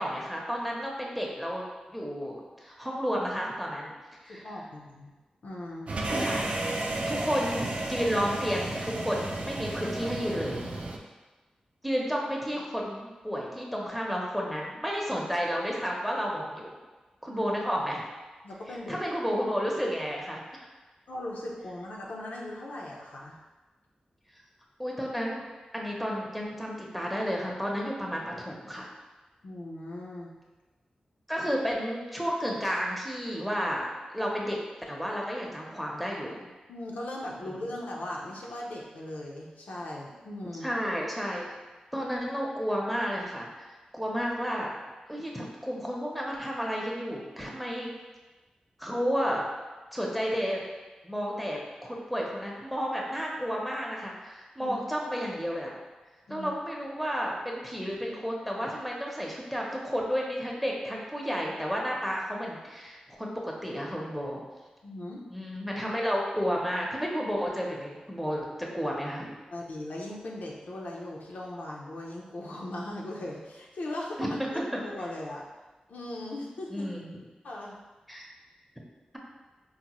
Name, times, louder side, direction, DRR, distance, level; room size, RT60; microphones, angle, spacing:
voice 1, 0.0-3.9 4.2-4.4 6.2-6.4 7.1-10.6 11.8-16.8 17.2-18.0 18.9-20.7 24.8-25.4 25.7-28.9 31.3-34.6 34.9-36.5 37.4-37.6 40.6-41.5 41.9-44.7 45.1-47.9 48.8-49.5 49.9-50.7 51.0-55.7 56.3-64.4 65.3-69.3 74.2-74.8 76.7-77.2 78.1-78.3, equal, ahead, -2 dB, 0.6 m, -32 dB
voice 2, 4.3-5.1 5.4-6.0 17.3-17.5 18.4-19.0 21.1-23.4 29.4-30.4 36.7-40.7 54.6-54.8 56.3-56.5 64.8-65.2 69.5-75.4 75.9-76.9 77.4-77.8, left 1 dB, 80° left, -3 dB, 0.5 m, -38 dB
sound 1, 5.9-11.0, right 2 dB, 60° right, 0.4 m, -32 dB
3.8 x 2.0 x 2.9 m, 1.2 s
cardioid pair, 60°, 3 cm